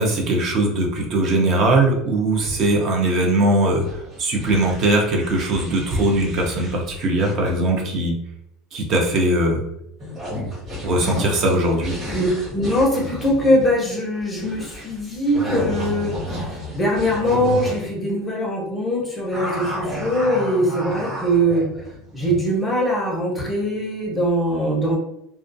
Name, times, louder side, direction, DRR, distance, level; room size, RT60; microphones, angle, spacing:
voice 1, 0.0-8.1 8.7-9.6 10.8-12.0, right 1 dB, 35° right, 0 dB, 0.5 m, -20 dB
sound 1, 3.8-7.8 10.0-17.9 19.3-22.5, equal, 15° right, 0.9 m, -32 dB
voice 2, 12.1-21.7 22.1-25.0, equal, 10° left, -2 dB, 0.6 m, -22 dB
2.3 x 2.2 x 2.5 m, 0.80 s
cardioid pair, 165°, 0 cm